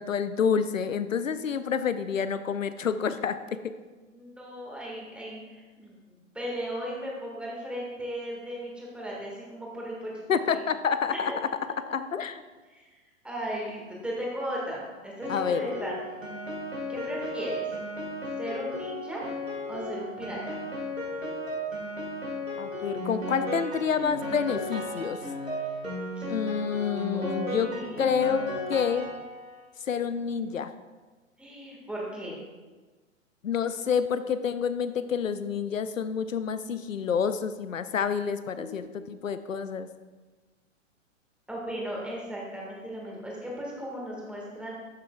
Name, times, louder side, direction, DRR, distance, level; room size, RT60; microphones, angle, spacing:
voice 1, 0.0-3.4 3.6-3.7 10.3-11.5 11.9-12.4 15.3-15.6 22.6-25.2 26.3-27.7 28.0-29.1 29.9-30.7 33.4-39.9, left 6 dB, 80° left, 12 dB, 0.5 m, -28 dB
voice 2, 4.1-10.6 11.1-11.3 12.7-12.9 13.2-16.0 16.9-17.7 18.4-19.2 19.7-20.6 27.1-28.0 31.4-32.4 38.6-39.0 41.5-44.7, equal, 5° right, -4 dB, 1.8 m, -36 dB
Piano, 15.2-29.6, left 1 dB, 85° right, 1.9 m, -35 dB
12.5 x 6.7 x 2.4 m, 1.3 s
figure-of-eight pair, 110°, 39 cm